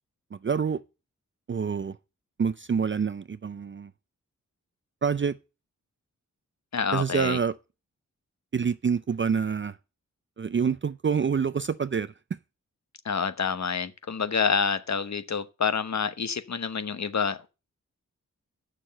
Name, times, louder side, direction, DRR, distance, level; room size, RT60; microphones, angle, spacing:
voice 1, 0.3-0.8 1.5-2.0 2.4-3.9 5.0-5.4 6.9-7.6 8.5-9.8 10.4-12.1, right 6 dB, 40° right, 0.5 m, -27 dB
voice 2, 6.7-7.4 13.0-17.4, left 6 dB, 60° left, 1.1 m, -28 dB
7.5 x 6.5 x 7.5 m
cardioid pair, 55°, 32 cm